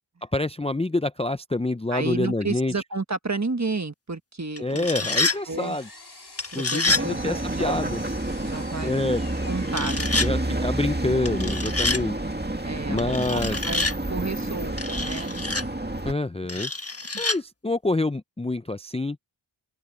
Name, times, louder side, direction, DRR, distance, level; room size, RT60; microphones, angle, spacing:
voice 1, 0.3-2.7 4.6-5.9 6.5-8.0 8.8-9.2 10.2-12.2 12.9-13.6 16.0-16.7 17.2-19.2, left 2 dB, 15° left, 0.5 m, -27 dB
voice 2, 1.9-4.9 5.2-5.8 6.5-7.9 8.4-8.9 9.5-10.2 12.6-13.0 13.3-15.4 17.1-17.2, right 3 dB, 35° right, 1.4 m, -32 dB
sound 1, 4.6-5.4 6.4-7.1 9.7-10.3 11.3-12.0 13.0-14.0 14.8-15.6 16.5-17.4, left 2 dB, 30° left, 1.5 m, -27 dB
Power tool, 4.9-10.9, left 2 dB, 60° left, 4.7 m, -47 dB
sound 2, 6.9-16.1, right 1 dB, 20° right, 2.1 m, -29 dB
wide cardioid pair, 45°, 46 cm